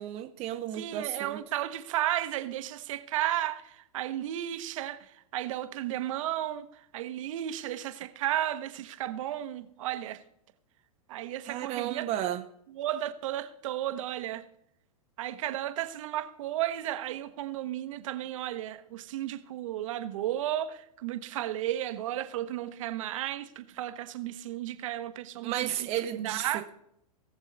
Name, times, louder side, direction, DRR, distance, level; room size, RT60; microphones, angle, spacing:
voice 1, 0.0-1.4 11.4-12.4 25.4-26.7, right 12 dB, 30° right, 0.7 m, -33 dB
voice 2, 0.7-10.2 11.1-12.1 12.8-14.4 15.2-25.9 26.1-26.7, right 13 dB, 55° right, 1.0 m, -34 dB
18.5 x 7.4 x 4.0 m
figure-of-eight pair, 100°, 20 cm